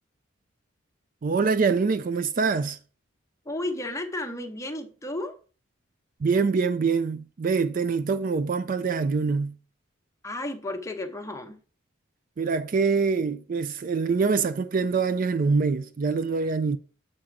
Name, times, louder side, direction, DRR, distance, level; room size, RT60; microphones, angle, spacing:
voice 1, 1.2-2.8 6.2-9.5 12.4-16.8, right 4 dB, 40° right, 0.3 m, -24 dB
voice 2, 3.5-5.3 10.2-11.6, left 1 dB, 15° left, 0.8 m, -33 dB
7.6 x 3.8 x 5.8 m
head